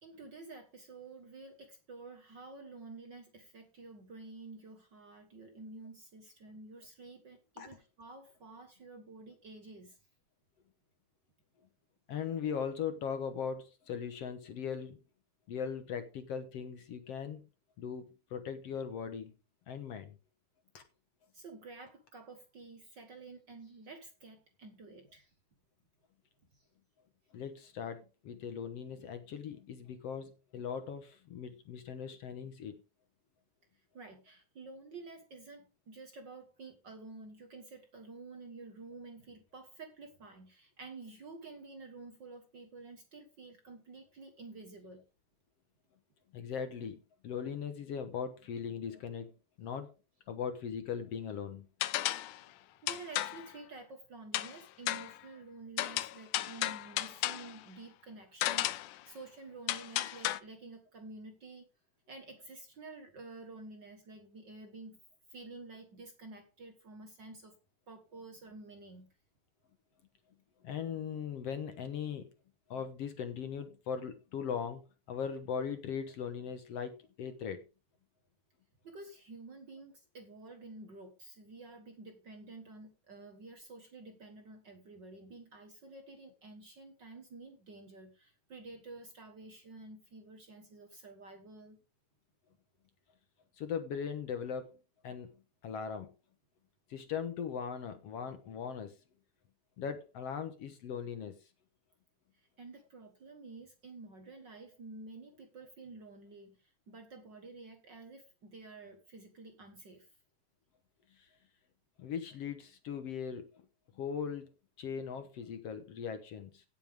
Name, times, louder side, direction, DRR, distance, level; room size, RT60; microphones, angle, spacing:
voice 1, 0.0-10.0 21.3-25.3 26.5-26.7 33.9-45.1 52.1-61.6 62.1-65.0 65.3-67.6 67.9-69.1 78.8-91.8 102.3-110.1, right 3 dB, 45° right, 1.7 m, -50 dB
voice 2, 12.1-15.0 15.5-17.4 17.8-19.3 19.7-20.1 20.7-20.8 27.3-32.7 46.3-47.0 47.2-49.3 49.6-49.9 50.3-51.7 70.6-72.3 72.7-74.8 75.1-76.9 77.2-77.6 93.6-95.3 95.6-96.1 96.9-98.9 99.8-101.4 112.0-113.5 114.0-114.5 114.8-116.6, left 7 dB, 60° left, 2.0 m, -39 dB
sound 1, 51.8-52.4 52.9-53.5 54.3-54.6 54.9-55.2 55.8-57.5 58.4-58.9 59.7-60.4, left 15 dB, 90° left, 2.2 m, -34 dB
17.0 x 7.3 x 3.5 m
omnidirectional pair, 3.5 m